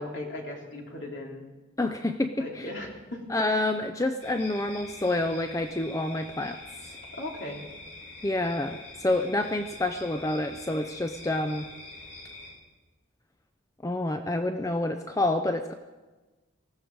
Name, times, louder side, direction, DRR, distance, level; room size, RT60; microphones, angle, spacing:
voice 1, 0.0-1.4 2.4-3.3 7.1-7.6, left 1 dB, 60° left, -1 dB, 3.2 m, -37 dB
voice 2, 1.8-2.7 3.3-6.6 8.2-11.7 13.8-15.7, left 2 dB, 15° left, 7 dB, 0.5 m, -28 dB
sound 1, 4.2-12.5, left 2 dB, 80° left, 7.5 m, -45 dB
19.5 x 15.0 x 4.7 m, 1.2 s
head